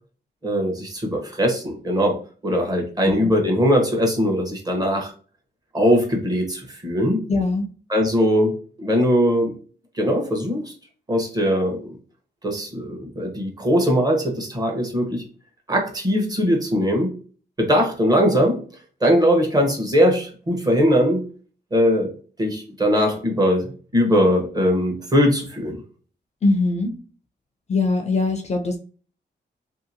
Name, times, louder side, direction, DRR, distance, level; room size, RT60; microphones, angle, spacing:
voice 1, 0.4-5.1 5.7-7.2 7.9-9.6 9.9-10.7 11.1-12.0 12.4-15.3 15.7-17.1 17.6-18.6 19.0-21.2 21.7-22.1 22.4-25.8, equal, 20° right, 1 dB, 0.9 m, -20 dB
voice 2, 7.3-7.7 26.4-26.9 27.7-28.8, left 3 dB, 35° left, 5 dB, 0.5 m, -21 dB
2.8 x 2.8 x 2.7 m, 0.40 s
wide cardioid pair, 150°, 18 cm